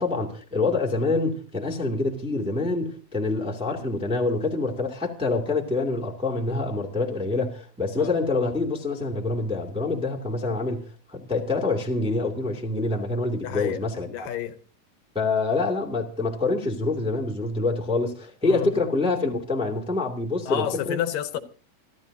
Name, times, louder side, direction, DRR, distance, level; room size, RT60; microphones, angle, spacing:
voice 1, 0.0-14.3 15.1-21.0, left 3 dB, ahead, 1.8 m, -26 dB
voice 2, 13.4-14.6 18.4-18.7 20.5-21.4, left 10 dB, 75° left, 2.5 m, -30 dB
29.0 x 13.0 x 2.8 m
omnidirectional pair, 4.1 m